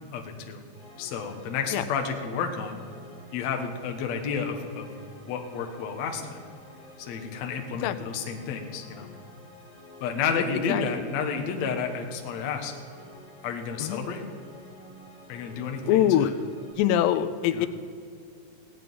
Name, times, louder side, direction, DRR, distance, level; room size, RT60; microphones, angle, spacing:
voice 1, 0.1-0.6 1.0-2.8 3.3-6.4 7.0-9.1 10.0-12.7 13.4-14.2 15.3-16.3 17.5-17.7, left 6 dB, 65° left, 3 dB, 1.8 m, -31 dB
sound 1, 0.7-16.7, left 1 dB, 10° left, 2.5 m, -50 dB
voice 2, 10.4-10.8 13.8-14.0 15.8-16.3 16.8-17.7, left 11 dB, 85° left, 11 dB, 2.7 m, -23 dB
17.5 x 6.0 x 9.2 m, 2.3 s
omnidirectional pair, 4.8 m